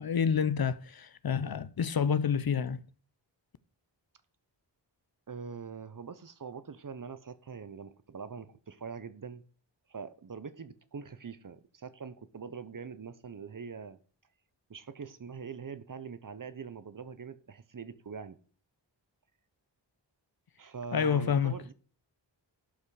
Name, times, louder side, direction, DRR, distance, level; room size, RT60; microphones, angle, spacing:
voice 1, 0.0-2.8 20.9-21.6, left 7 dB, 55° left, 0.6 m, -28 dB
voice 2, 5.3-9.4 9.9-14.0 14.7-18.4 20.6-21.7, right 5 dB, 45° right, 0.7 m, -43 dB
11.5 x 5.6 x 4.8 m
wide cardioid pair, 95°, 45 cm